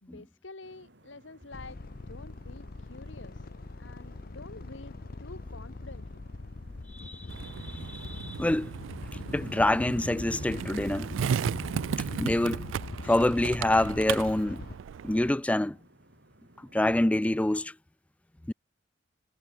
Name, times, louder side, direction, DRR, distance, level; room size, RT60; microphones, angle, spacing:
voice 1, 0.0-1.8 2.1-3.5 3.8-6.3, left 3 dB, 75° left, 1.9 m, -48 dB
sound 1, 0.6-17.7, right 1 dB, 65° right, 6.4 m, -60 dB
sound 2, 1.5-14.8, left 2 dB, 55° left, 0.8 m, -41 dB
voice 2, 7.1-8.7 9.3-11.1 12.2-12.7 13.0-14.6 15.0-15.8 16.7-17.7 18.5-18.6, left 1 dB, 5° left, 0.3 m, -26 dB
Skateboard, 7.3-15.3, right 7 dB, 90° right, 0.3 m, -35 dB
head